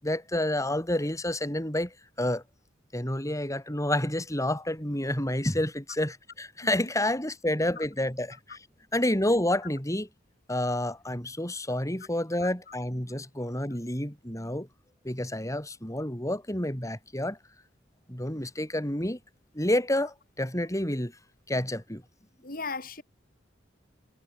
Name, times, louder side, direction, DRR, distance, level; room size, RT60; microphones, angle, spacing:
voice 1, 0.0-2.4 2.9-8.6 8.9-10.1 10.5-14.7 15.0-17.4 18.1-19.2 19.5-21.1 21.5-22.0, left 1 dB, 15° left, 7.6 m, -29 dB
voice 2, 22.4-23.0, left 4 dB, 50° left, 6.8 m, -36 dB
head